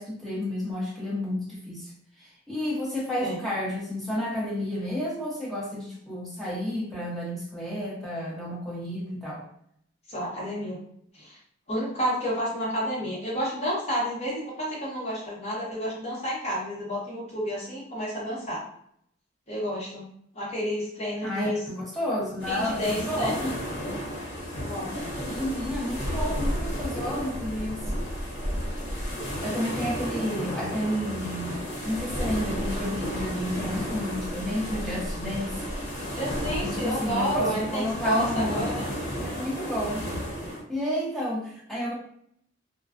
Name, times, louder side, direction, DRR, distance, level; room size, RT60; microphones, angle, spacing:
voice 1, 0.0-1.9 2.2-9.4 21.2-23.6 25.3-27.9 29.4-35.6 36.6-38.7 39.2-40.1 40.7-41.9, equal, ahead, -6 dB, 0.7 m, -31 dB
voice 2, 10.1-10.8 11.1-11.4 11.7-18.6 19.5-20.0 20.3-21.6 22.5-23.3 24.6-25.0 36.1-38.9, equal, 35° left, -6 dB, 1.0 m, -30 dB
sound 1, 22.4-40.6, equal, 70° left, 0.9 m, -32 dB
2.3 x 2.2 x 2.4 m, 0.68 s
head